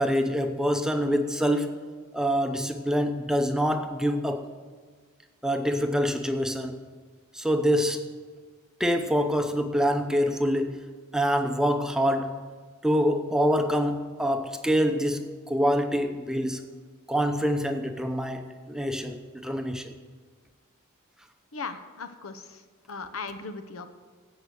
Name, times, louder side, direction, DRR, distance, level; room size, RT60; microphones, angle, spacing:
voice 1, 0.0-1.8 2.1-4.5 5.4-6.8 7.3-8.1 8.8-12.5 12.8-16.6 17.1-20.0, equal, 5° right, 0.7 m, -26 dB
voice 2, 21.5-22.6 22.9-23.9, left 4 dB, 80° left, 0.9 m, -38 dB
16.0 x 5.7 x 6.3 m
head